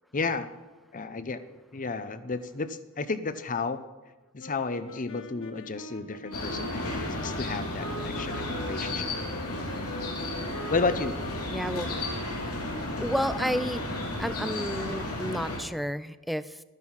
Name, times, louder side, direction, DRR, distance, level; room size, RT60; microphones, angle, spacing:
voice 1, 0.1-0.5 0.9-3.8 4.3-9.5 10.7-11.2, left 4 dB, 35° left, 12 dB, 0.7 m, -32 dB
sound 1, 4.4-15.1, left 2 dB, 65° left, 1.5 m, -43 dB
sound 2, 6.3-15.6, left 1 dB, 80° left, 3.4 m, -33 dB
voice 2, 11.5-11.9 13.0-13.9 14.2-16.6, equal, ahead, 14 dB, 0.3 m, -31 dB
13.5 x 10.5 x 5.6 m, 1.2 s
head